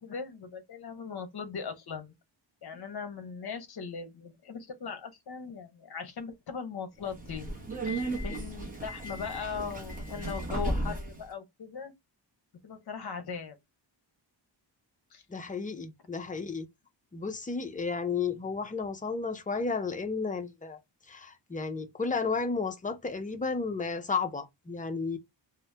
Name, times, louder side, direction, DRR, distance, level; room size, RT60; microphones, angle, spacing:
voice 1, 0.0-2.1 2.6-7.5 7.8-11.9 12.6-13.6 15.1-15.2, left 6 dB, 55° left, 0.7 m, -39 dB
Subway metro underground, 7.0-11.2, right 1 dB, 20° right, 0.7 m, -35 dB
voice 2, 15.3-16.7 17.1-20.8 21.1-25.2, left 4 dB, 20° left, 0.3 m, -33 dB
2.7 x 2.0 x 3.2 m
wide cardioid pair, 165°, 46 cm